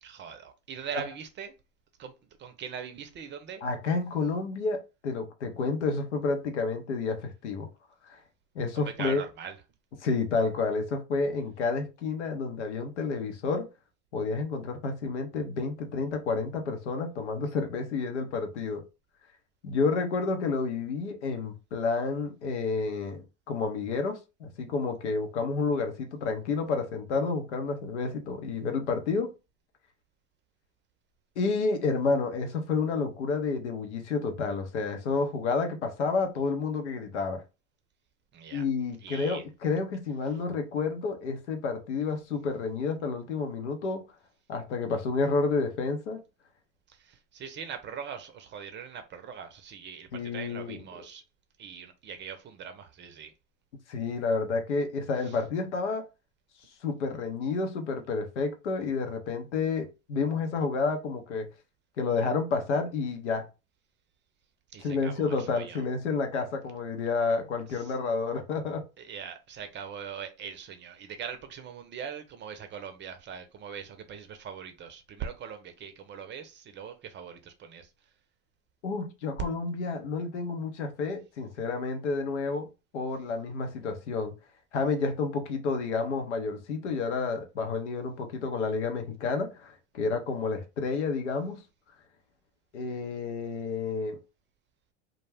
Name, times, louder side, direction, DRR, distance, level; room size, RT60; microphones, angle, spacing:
voice 1, 0.0-1.6 2.0-3.6 8.7-9.6 38.3-38.6 39.0-39.4 40.3-40.4 46.9-51.2 51.6-53.3 55.2-55.4 64.7-65.8 67.7-67.9 69.0-78.1, right 7 dB, 30° right, 0.6 m, -41 dB
voice 2, 3.6-7.7 8.1-8.2 8.5-9.2 10.0-13.7 14.1-18.8 19.6-29.3 31.4-37.4 38.5-44.0 44.5-46.2 50.1-50.8 53.9-56.1 56.8-61.5 62.0-63.5 64.8-68.8 78.8-84.3 84.7-91.6 92.7-94.2, left 4 dB, 85° left, 0.7 m, -30 dB
2.3 x 2.2 x 3.3 m
hypercardioid pair, 85°, 34 cm